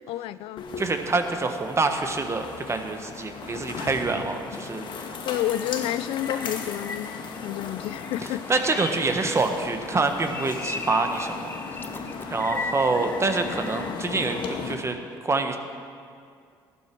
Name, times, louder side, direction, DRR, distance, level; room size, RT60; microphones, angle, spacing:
voice 1, 0.1-0.7 5.3-7.1 7.4-8.4, left 13 dB, 75° left, 17 dB, 0.4 m, -29 dB
sound 1, 0.6-14.7, left 5 dB, 60° left, 1.4 m, -37 dB
voice 2, 0.8-4.9 8.5-11.5 12.3-15.0 15.2-15.6, right 3 dB, 30° right, 6 dB, 1.4 m, -26 dB
sound 2, 5.3-7.5 7.8-9.7 10.1-14.3, left 3 dB, 20° left, 1.0 m, -38 dB
14.5 x 12.0 x 4.7 m, 2.2 s
supercardioid pair, 65°, 9 cm